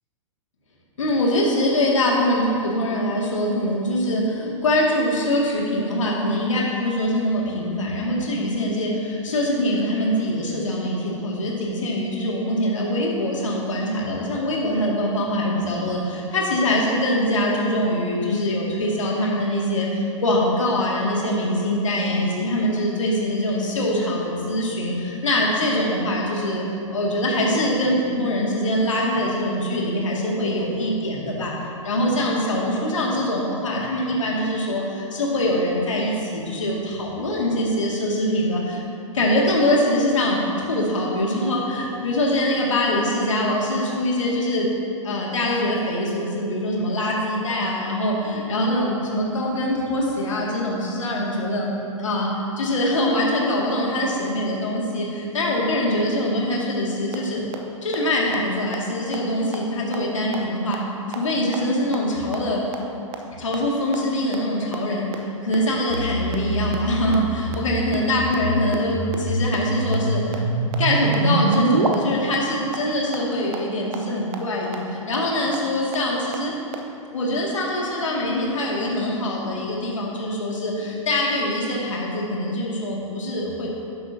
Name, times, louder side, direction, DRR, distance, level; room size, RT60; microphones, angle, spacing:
voice 1, 1.0-26.6 26.9-31.5 31.8-38.8 39.1-44.7 45.0-51.7 52.0-52.3 52.6-57.4 57.8-60.8 61.1-62.7 63.4-70.4 70.8-76.5 77.1-83.7, left 1 dB, 70° left, -3 dB, 2.3 m, -23 dB
sound 1, 57.1-57.2 57.5-57.6 57.9-58.0 58.3-58.4 58.7-58.8 59.1-59.2 59.5-59.6 59.9-60.0 60.3-60.4 60.7-60.8 61.1-61.2 61.5-61.6 61.9-62.0 62.3-62.4 62.7-62.8 63.1-63.2 63.5-63.6 63.9-64.0 64.3-64.4 64.7-64.8 65.1-65.2 65.5-65.6 65.9-66.0 66.3-66.4 66.7-66.8 67.1-67.2 67.5-67.6 67.9-68.0 68.3-68.4 68.7-68.8 69.1-69.2 69.5-69.6 69.9-70.0 70.3-70.4 70.7-70.8 71.1-71.2 71.5-71.6 71.9-72.0 72.3-72.4 72.7-72.8 73.1-73.2 73.5-73.6 73.9-74.0 74.3-74.4 74.7-74.8 75.1-75.2 75.5-75.6 75.9-76.0 76.3-76.4 76.7-76.8, right 13 dB, 35° right, 0.8 m, -31 dB
sound 2, 65.9-71.9, right 2 dB, 80° right, 0.9 m, -25 dB
12.5 x 9.5 x 2.8 m, 2.6 s
figure-of-eight pair, 105°, 17 cm